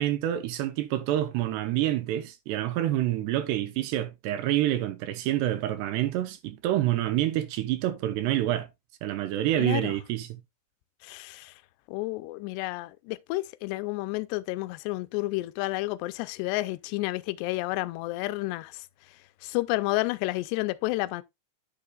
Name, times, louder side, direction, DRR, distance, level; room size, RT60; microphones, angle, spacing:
voice 1, 0.0-8.7 9.0-10.4, right 13 dB, 80° right, 2.7 m, -27 dB
voice 2, 9.6-10.0 11.0-11.6 11.9-21.2, left 20 dB, 85° left, 2.5 m, -31 dB
10.5 x 6.6 x 2.3 m
omnidirectional pair, 5.3 m